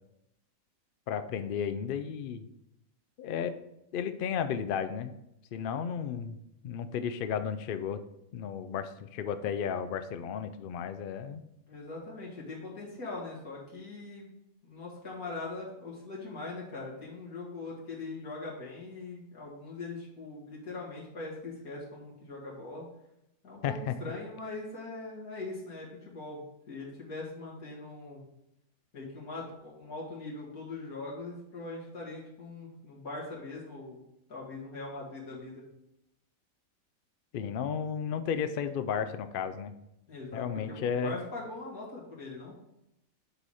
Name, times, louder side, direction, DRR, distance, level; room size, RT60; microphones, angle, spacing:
voice 1, 1.1-2.5 3.2-3.5 3.9-5.1 5.5-6.4 6.6-8.0 8.3-11.4 23.6-23.9 37.3-39.7 40.3-41.1, left 7 dB, 75° left, 10 dB, 0.5 m, -33 dB
voice 2, 11.7-14.3 14.6-22.8 23.4-28.2 28.9-34.0 34.3-35.6 40.1-42.6, left 3 dB, 90° left, -5 dB, 2.4 m, -41 dB
8.1 x 4.2 x 4.8 m, 0.84 s
omnidirectional pair, 1.5 m